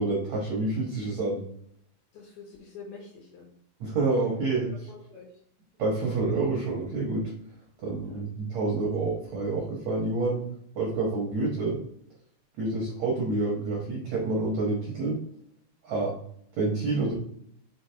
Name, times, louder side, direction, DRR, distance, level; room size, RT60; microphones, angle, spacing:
voice 1, 0.0-1.4 3.8-4.7 5.8-7.2 7.8-10.4 10.8-11.8 12.6-15.2 15.8-16.1 16.6-17.1, right 3 dB, 65° right, -2 dB, 1.8 m, -28 dB
voice 2, 2.1-3.5 4.2-4.5 4.9-5.3 7.9-8.2, left 5 dB, 65° left, -2 dB, 3.2 m, -46 dB
6.3 x 5.3 x 3.4 m, 0.67 s
omnidirectional pair, 5.2 m